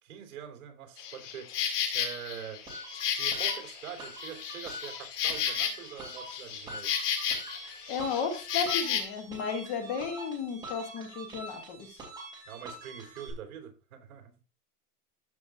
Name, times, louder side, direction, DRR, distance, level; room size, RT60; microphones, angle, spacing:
voice 1, 0.0-1.6 1.9-2.6 3.2-6.9 12.4-14.4, right 9 dB, 60° right, 3 dB, 3.4 m, -44 dB
Insect, 1.0-9.0, left 8 dB, 80° left, 2.3 m, -33 dB
sound 1, 2.7-13.3, right 2 dB, 10° right, 2.8 m, -45 dB
voice 2, 7.9-12.0, left 6 dB, 15° left, 7 dB, 0.8 m, -34 dB
13.5 x 6.1 x 2.5 m, 0.33 s
supercardioid pair, 175°, 46 cm